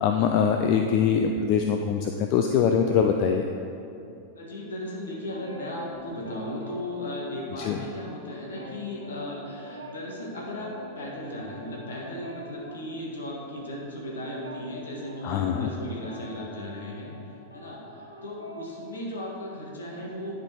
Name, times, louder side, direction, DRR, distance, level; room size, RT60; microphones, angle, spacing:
voice 1, 0.0-3.4 7.6-7.8 15.2-15.7, left 7 dB, 45° left, 4 dB, 0.4 m, -23 dB
voice 2, 4.4-17.1 17.5-20.4, left 1 dB, 70° left, -2 dB, 1.6 m, -36 dB
sound 1, 5.2-7.9 8.2-18.8, equal, 85° left, 0.8 m, -45 dB
10.5 x 4.4 x 4.3 m, 2.6 s
figure-of-eight pair, 90°, 0 cm